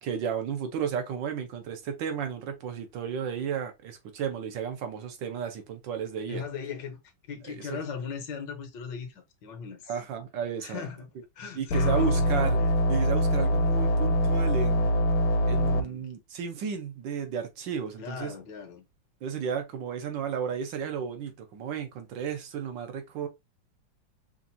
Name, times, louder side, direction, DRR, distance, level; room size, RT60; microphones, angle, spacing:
voice 1, 0.0-6.4 7.5-7.8 9.9-10.9 11.5-12.6 12.9-14.9 15.4-18.3 19.2-23.3, right 7 dB, 70° right, 1.6 m, -33 dB
voice 2, 6.3-7.0 7.3-9.9 10.6-11.1 11.3-12.7 15.8-16.1 18.0-18.8, left 6 dB, 65° left, 1.5 m, -38 dB
sound 1, 11.7-15.8, equal, 90° left, 1.6 m, -24 dB
5.8 x 2.6 x 2.6 m
omnidirectional pair, 2.2 m